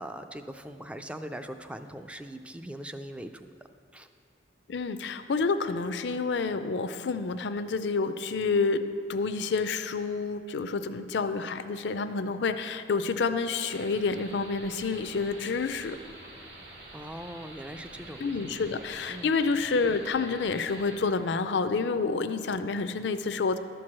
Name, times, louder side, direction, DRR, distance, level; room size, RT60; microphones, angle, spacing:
voice 1, 0.0-3.5 3.9-4.1 16.9-18.7 19.1-19.3, right 1 dB, 5° right, 8 dB, 0.3 m, -41 dB
voice 2, 4.7-16.0 18.2-23.6, left 4 dB, 70° left, 11 dB, 0.5 m, -29 dB
sound 1, 13.7-21.0, right 1 dB, 65° right, 1.7 m, -47 dB
12.0 x 4.6 x 7.4 m, 2.3 s
head